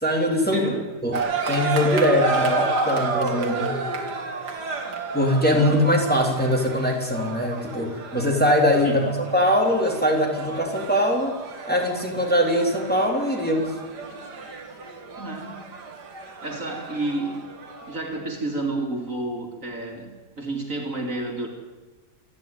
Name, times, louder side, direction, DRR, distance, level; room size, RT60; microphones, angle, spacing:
voice 1, 0.0-0.6 1.0-1.1 1.5-3.8 5.1-9.0 9.3-11.4 11.7-13.7, left 1 dB, 5° left, 0 dB, 3.5 m, -22 dB
voice 2, 0.5-0.8 5.5-5.7 8.8-9.2 15.2-15.6 16.4-17.5 17.9-21.5, right 2 dB, 50° right, 2 dB, 3.2 m, -30 dB
sound 1, 1.1-18.0, right 4 dB, 80° right, 2.7 m, -31 dB
27.5 x 11.0 x 9.3 m, 1.3 s
omnidirectional pair, 1.8 m